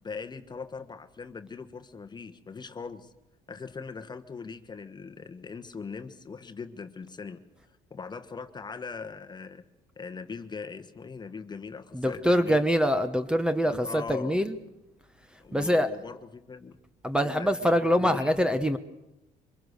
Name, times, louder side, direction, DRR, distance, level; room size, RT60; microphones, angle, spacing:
voice 1, 0.0-3.1 3.5-7.4 7.9-9.6 10.0-12.7 13.6-14.4 15.4-16.8 17.2-17.7 18.0-18.4, left 5 dB, 25° left, 8 dB, 1.2 m, -40 dB
voice 2, 11.9-14.6 15.5-15.9 17.0-18.8, equal, 5° right, 10 dB, 1.0 m, -24 dB
24.5 x 21.5 x 6.6 m, 0.94 s
cardioid pair, 110°, 17 cm